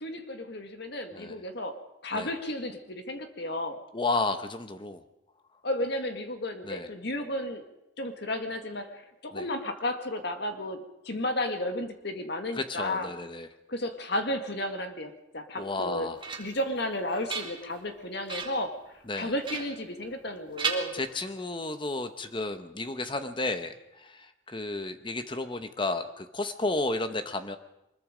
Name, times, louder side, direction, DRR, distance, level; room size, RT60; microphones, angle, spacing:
voice 1, 0.0-3.8 5.6-7.6 8.0-13.1 13.7-16.1 16.4-18.8 19.1-20.9, left 1 dB, 60° left, 7 dB, 2.0 m, -33 dB
voice 2, 3.9-5.0 6.6-6.9 9.3-9.4 12.6-13.5 15.6-16.2 19.1-19.3 20.9-23.7 24.0-24.2 24.5-27.6, left 2 dB, 25° left, 9 dB, 1.0 m, -32 dB
sound 1, 15.7-16.7 17.1-17.9 18.3-18.7 19.4-20.3 20.6-21.5, right 5 dB, 25° right, 2.3 m, -36 dB
24.0 x 21.5 x 5.1 m, 0.89 s
head